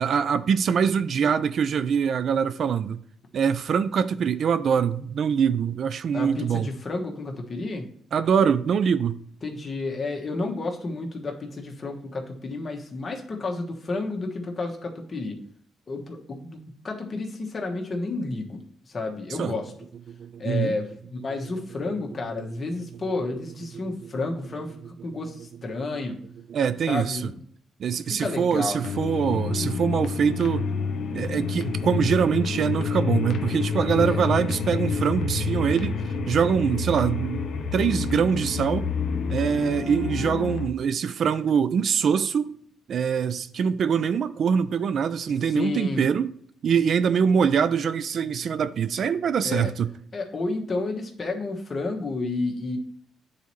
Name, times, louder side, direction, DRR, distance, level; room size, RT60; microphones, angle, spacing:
voice 1, 0.0-3.0 3.3-6.7 8.1-9.2 19.4-19.6 20.2-20.7 26.5-27.3 27.8-30.7 31.1-36.0 36.3-37.4 37.7-38.9 39.3-42.6 42.9-46.3 46.6-49.9, right 7 dB, 60° right, 0.3 m, -24 dB
voice 2, 6.1-7.9 9.4-15.4 15.9-19.7 20.4-24.7 25.0-26.2 26.9-27.4 27.9-28.9 34.0-34.2 45.5-46.1 49.4-49.7 50.1-52.8, left 3 dB, 35° left, 1.2 m, -31 dB
sound 1, 28.8-40.7, left 4 dB, 70° left, 0.7 m, -28 dB
9.3 x 4.2 x 3.1 m
cardioid pair, 90°, 0 cm